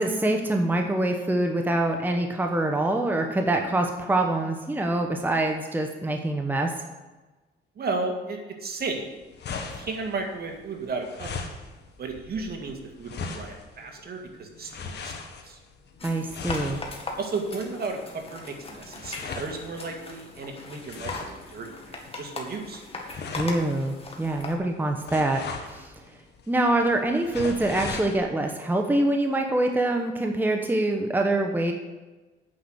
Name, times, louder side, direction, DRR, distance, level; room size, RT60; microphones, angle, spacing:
voice 1, 0.0-6.7 16.0-16.8 23.3-25.9 26.5-31.7, right 1 dB, 10° right, 3 dB, 1.0 m, -25 dB
voice 2, 7.8-9.0 9.7-11.5 12.0-15.1 15.4-15.6 17.2-22.8, right 3 dB, 50° right, 3 dB, 2.0 m, -34 dB
sound 1, 8.8-28.2, left 4 dB, 60° left, 1.4 m, -40 dB
sound 2, 16.0-24.6, left 3 dB, 30° left, 2.0 m, -40 dB
8.7 x 5.9 x 8.0 m, 1.2 s
cardioid pair, 90°, 20 cm